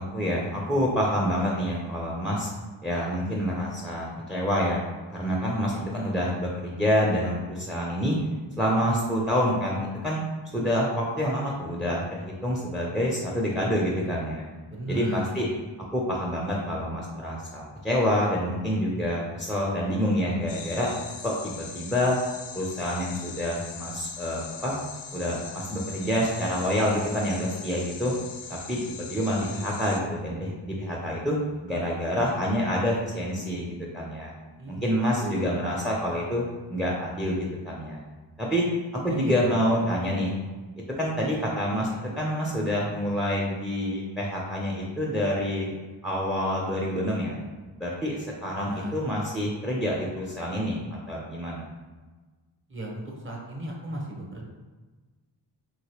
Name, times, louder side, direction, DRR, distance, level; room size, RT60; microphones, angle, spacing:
voice 1, 0.0-2.5 2.8-4.8 5.1-8.2 8.6-10.2 10.5-14.4 14.9-15.5 15.9-20.9 21.2-22.2 22.5-24.8 25.1-28.1 28.5-31.4 31.6-33.7 33.9-34.3 34.7-36.4 36.7-37.4 37.6-38.0 38.4-38.6 39.0-40.4 41.0-45.7 46.0-47.3 47.8-51.7, equal, ahead, -3 dB, 0.6 m, -27 dB
voice 2, 14.7-15.2 34.6-34.9 35.2-35.6 39.1-39.5 48.7-48.9 52.7-54.5, right 1 dB, 30° right, -2 dB, 0.9 m, -35 dB
sound 1, 20.5-30.0, left 6 dB, 70° left, 0.5 m, -41 dB
3.0 x 3.0 x 2.9 m, 1.3 s
cardioid pair, 55°, 44 cm